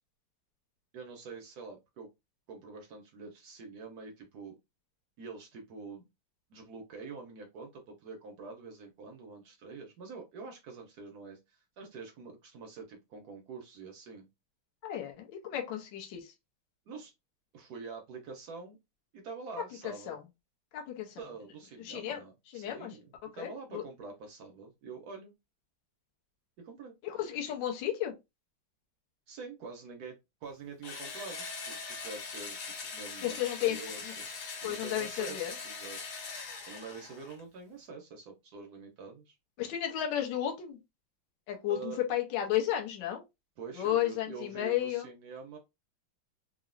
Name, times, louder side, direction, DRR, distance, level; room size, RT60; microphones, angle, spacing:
voice 1, 0.9-2.1 2.5-4.5 5.2-6.1 6.5-14.3 16.9-17.1 17.5-18.8 19.1-20.2 21.2-25.3 26.6-26.9 29.3-30.1 30.4-32.6 32.9-34.3 34.6-36.0 36.7-39.4 41.7-42.0 43.6-45.6, right 4 dB, 75° right, 0.9 m, -46 dB
voice 2, 14.8-16.3 19.8-20.2 20.7-21.2 21.8-22.2 22.5-22.9 23.4-23.8 27.0-28.1 33.2-33.8 34.6-35.5 39.6-40.8 41.5-43.2 43.7-45.1, left 11 dB, 70° left, 1.2 m, -33 dB
Engine / Drill, 30.8-37.4, left 4 dB, 90° left, 1.8 m, -42 dB
3.7 x 2.0 x 2.5 m
omnidirectional pair, 2.3 m